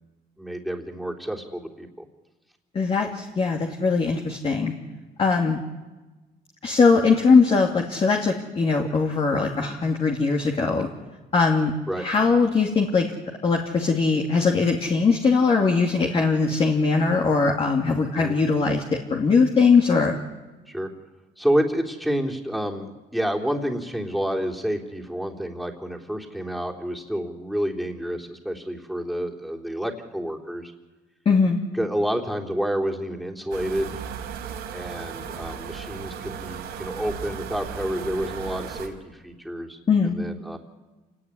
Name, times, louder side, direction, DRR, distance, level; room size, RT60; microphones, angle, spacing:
voice 1, 0.4-2.1 11.9-12.0 18.2-18.4 20.7-20.9 21.4-30.7 31.7-34.0 34.7-40.6, equal, ahead, 0 dB, 3.4 m, -29 dB
voice 2, 2.7-4.7 5.2-5.6 6.6-10.9 11.3-13.1 13.4-20.1 31.2-31.6 39.9-40.1, left 4 dB, 35° left, 1 dB, 2.7 m, -21 dB
sound 1, 33.5-38.9, right 7 dB, 90° right, 4.4 m, -36 dB
27.5 x 18.0 x 9.9 m, 1.2 s
cardioid pair, 110°, 17 cm